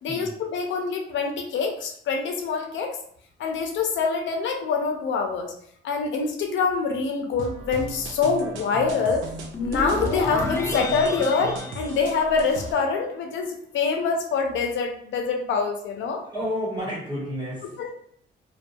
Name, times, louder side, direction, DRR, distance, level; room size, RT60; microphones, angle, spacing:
voice 1, 0.0-2.9 3.4-5.5 5.8-9.2 9.6-16.2 17.8-17.9, left 5 dB, 70° left, 3 dB, 0.5 m, -25 dB
sound 1, 7.4-12.7, right 2 dB, 80° right, 0.4 m, -37 dB
sound 2, 9.5-12.8, left 2 dB, 15° left, 0.3 m, -31 dB
voice 2, 16.2-17.9, equal, 20° right, -6 dB, 1.3 m, -31 dB
2.6 x 2.2 x 2.2 m, 0.66 s
cardioid pair, 90°, 20 cm